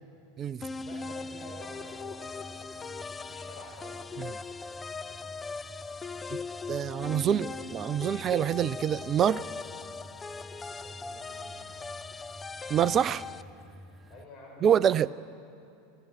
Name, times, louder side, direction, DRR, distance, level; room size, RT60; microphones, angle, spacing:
sound 1, 0.6-13.4, left 4 dB, 20° left, 0.5 m, -40 dB
sound 2, 0.6-14.3, right 1 dB, 15° right, 0.9 m, -51 dB
voice 1, 0.8-4.0 10.8-11.9 13.0-13.3 13.6-13.7 14.1-15.0, left 1 dB, 35° left, 0 dB, 5.4 m, -50 dB
voice 2, 6.7-9.4 12.7-13.2 14.6-15.1, right 9 dB, 30° right, 17 dB, 0.5 m, -26 dB
26.5 x 18.0 x 6.3 m, 2.6 s
figure-of-eight pair, 85°, 0 cm